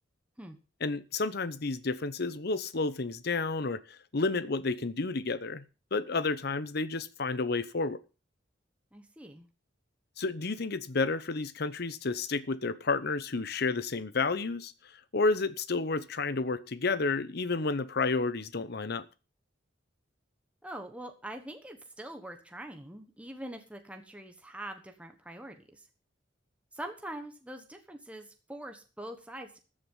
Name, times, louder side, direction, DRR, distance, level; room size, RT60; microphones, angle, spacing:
voice 1, 0.8-5.7 5.9-8.0 10.2-14.7 15.1-19.1, left 3 dB, 55° left, 0.9 m, -31 dB
voice 2, 8.9-9.5 20.6-25.9 26.7-29.6, right 1 dB, 5° right, 1.2 m, -44 dB
14.5 x 7.7 x 5.5 m
head